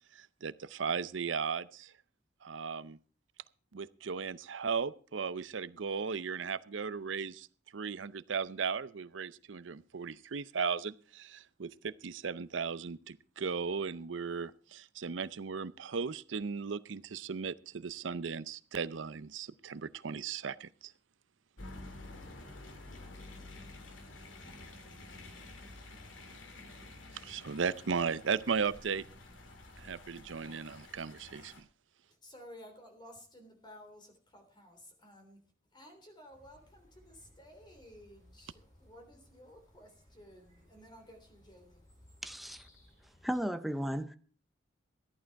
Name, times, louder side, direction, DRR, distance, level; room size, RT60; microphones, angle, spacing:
voice 1, 0.1-1.9 2.4-3.0 3.7-7.5 7.7-20.9 27.1-29.0 29.8-31.7, right 5 dB, 75° right, 0.6 m, -36 dB
sound 1, 21.6-31.6, left 2 dB, 85° left, 2.3 m, -50 dB
voice 2, 32.1-35.5 35.7-42.2 42.7-42.9, equal, 25° left, 3.3 m, -55 dB
sound 2, 36.3-43.4, left 1 dB, 40° left, 7.4 m, -63 dB
voice 3, 42.2-42.7 43.2-44.2, equal, ahead, 0.7 m, -35 dB
14.0 x 11.0 x 4.6 m
head